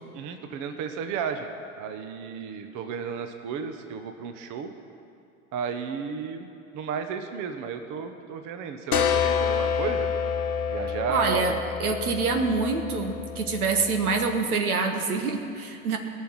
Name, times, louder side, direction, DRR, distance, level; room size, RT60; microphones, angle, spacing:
voice 1, 0.1-1.5 1.8-4.7 5.5-6.5 6.7-10.1 10.7-11.6, right 6 dB, 45° right, 7 dB, 1.2 m, -33 dB
sound 1, 8.9-14.4, left 7 dB, 90° left, 1.0 m, -28 dB
voice 2, 11.1-11.5 11.8-16.0, right 4 dB, 85° right, 5 dB, 1.4 m, -26 dB
18.5 x 6.4 x 9.0 m, 2.5 s
hypercardioid pair, 90°, 43 cm